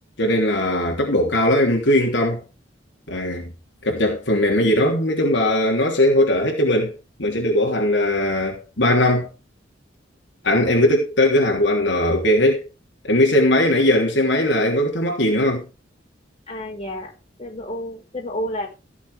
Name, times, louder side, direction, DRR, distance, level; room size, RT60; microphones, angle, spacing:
voice 1, 0.2-2.4 3.1-3.5 3.8-6.9 7.2-9.3 10.4-12.7 13.0-15.7, left 1 dB, 70° left, 3.3 m, -19 dB
voice 2, 16.5-17.1 17.4-18.7, equal, 30° left, 5.4 m, -30 dB
16.5 x 7.1 x 5.0 m
head